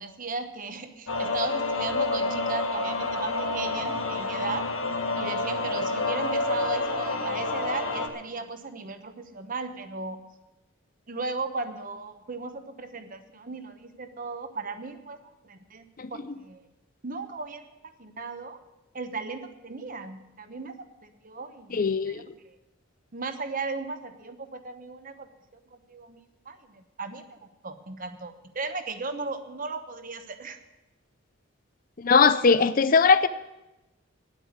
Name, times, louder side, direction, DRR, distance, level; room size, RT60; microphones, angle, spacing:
voice 1, 0.0-4.7 5.2-10.2 11.1-15.8 16.1-16.6 17.0-17.6 18.0-18.6 18.9-20.7 21.0-22.6 23.1-25.3 25.7-27.4 27.6-30.6, right 4 dB, 40° right, 1.0 m, -36 dB
sound 1, 1.1-8.1, left 3 dB, 90° left, 1.6 m, -28 dB
voice 2, 21.7-22.2 32.0-33.3, left 5 dB, 45° left, 0.5 m, -20 dB
9.9 x 8.3 x 9.3 m
head